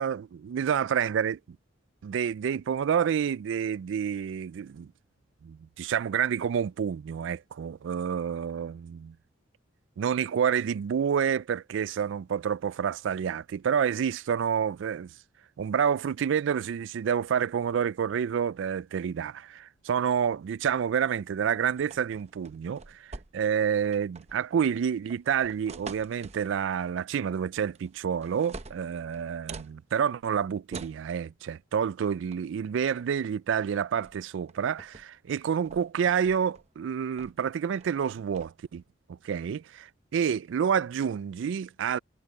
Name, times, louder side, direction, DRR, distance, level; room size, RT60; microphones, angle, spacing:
voice 1, 0.0-1.4 2.0-4.9 5.4-9.2 10.0-15.1 15.6-38.8 39.1-42.0, right 7 dB, 65° right, 0.3 m, -28 dB
sound 1, 21.8-23.6 23.9-24.5 25.1-26.5 27.6-27.9 28.2-29.7 30.7-31.0 32.3-32.5 32.8-33.2 34.0-34.2 34.5-35.0 35.4-36.7 37.2-37.5 37.8-38.5, right 4 dB, 35° right, 0.8 m, -45 dB
head